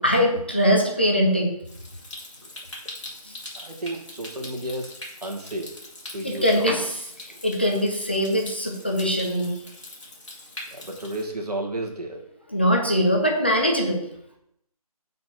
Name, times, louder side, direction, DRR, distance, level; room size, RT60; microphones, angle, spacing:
voice 1, 0.0-1.5 3.2-3.3 6.2-9.5 12.5-14.0, equal, 15° left, 0 dB, 0.4 m, -22 dB
Stream, 1.6-11.2, left 1 dB, 50° left, 2.1 m, -42 dB
voice 2, 3.5-4.9 5.2-5.7 6.1-6.7 7.3-7.4 10.7-12.2, right 1 dB, 85° right, 2 dB, 1.7 m, -32 dB
5.7 x 4.2 x 4.5 m, 0.76 s
figure-of-eight pair, 165°, 20 cm